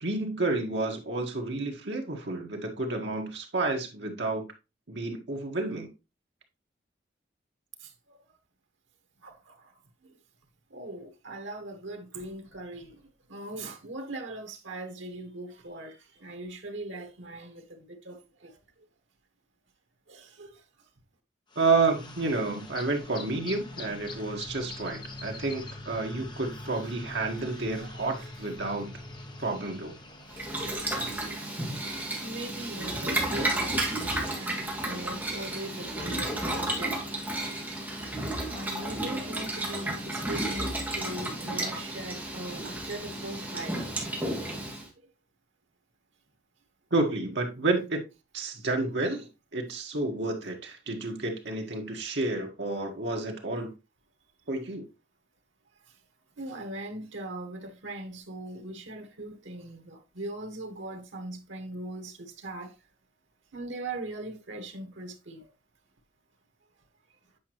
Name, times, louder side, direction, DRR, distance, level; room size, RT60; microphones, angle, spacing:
voice 1, 0.0-4.5 4.9-5.9 21.5-28.9 29.4-29.9 46.9-48.0 48.3-53.7 54.5-54.9, right 3 dB, 70° right, 1.6 m, -30 dB
voice 2, 9.2-9.5 10.7-12.9 13.3-15.9 16.2-18.5 20.1-20.5 27.4-28.3 30.9-31.4 32.2-36.9 38.5-43.8 56.4-62.1 62.4-62.7 63.5-65.4, right 1 dB, 90° right, 1.4 m, -40 dB
sound 1, 21.5-31.4, left 2 dB, 25° left, 1.0 m, -43 dB
Boiling, 30.3-44.9, right 1 dB, 10° right, 1.7 m, -32 dB
8.3 x 5.2 x 3.0 m
head